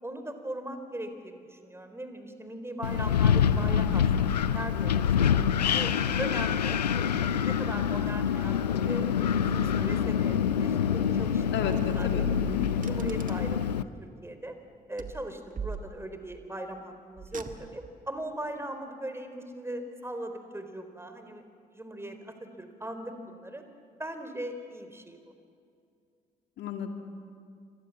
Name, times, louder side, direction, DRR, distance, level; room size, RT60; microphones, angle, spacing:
voice 1, 0.0-5.4 5.7-6.8 7.2-8.6 8.8-12.3 12.8-14.5 14.9-21.4 21.7-23.6 24.0-25.2, right 1 dB, 10° right, 7 dB, 4.2 m, -39 dB
Wind, 2.8-13.8, left 8 dB, 90° left, 0.6 m, -26 dB
voice 2, 11.5-12.7 26.6-26.9, left 7 dB, 60° left, 5 dB, 2.3 m, -33 dB
Car, 12.5-13.7 15.0-16.3 17.2-18.0, right 5 dB, 40° right, 2.1 m, -42 dB
29.5 x 25.5 x 7.4 m, 2.4 s
figure-of-eight pair, 40°, 20 cm